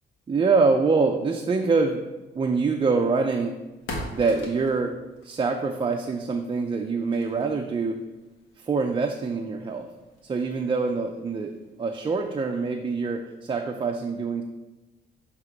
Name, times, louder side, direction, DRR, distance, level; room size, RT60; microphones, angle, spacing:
voice 1, 0.3-2.0 2.3-3.6 4.1-5.0 5.2-8.0 8.6-9.9 10.2-14.4, right 4 dB, 25° right, 3 dB, 0.4 m, -25 dB
sound 1, 2.3-12.6, left 1 dB, 85° left, 1.4 m, -44 dB
7.7 x 3.0 x 4.6 m, 1.1 s
cardioid pair, 90°, 20 cm